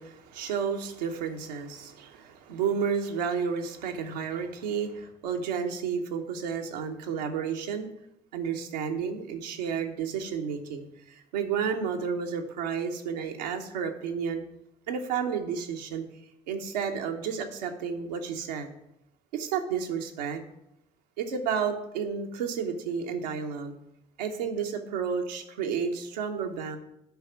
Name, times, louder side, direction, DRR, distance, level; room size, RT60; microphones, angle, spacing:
voice 1, 0.0-7.9 8.3-14.4 14.9-16.0 16.5-18.7 19.3-20.4 21.2-23.7 24.2-26.8, right 6 dB, 80° right, 3 dB, 0.9 m, -31 dB
9.3 x 4.9 x 5.7 m, 0.84 s
hypercardioid pair, 45°, 21 cm